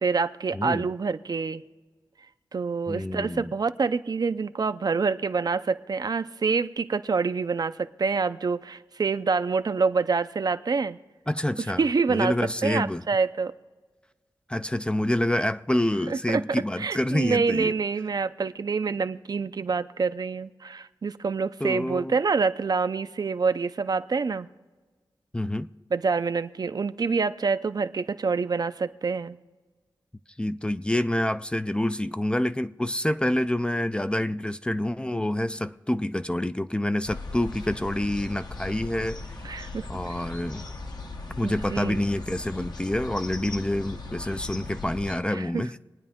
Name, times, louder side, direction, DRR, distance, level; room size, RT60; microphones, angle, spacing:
voice 1, 0.0-1.6 2.5-11.0 11.8-12.3 12.6-13.5 16.1-16.4 16.8-24.5 25.9-29.4 39.4-39.9 41.4-42.0 45.3-45.6, right 4 dB, 55° right, 0.5 m, -26 dB
voice 2, 0.5-0.9 2.9-3.5 11.3-11.8 12.1-13.0 14.5-17.7 21.6-22.2 25.3-25.7 30.4-39.2 39.9-40.6 41.4-45.8, left 1 dB, 10° left, 0.4 m, -27 dB
sound 1, 37.0-45.2, left 3 dB, 60° left, 1.1 m, -38 dB
26.5 x 9.7 x 3.6 m
wide cardioid pair, 105°, 8 cm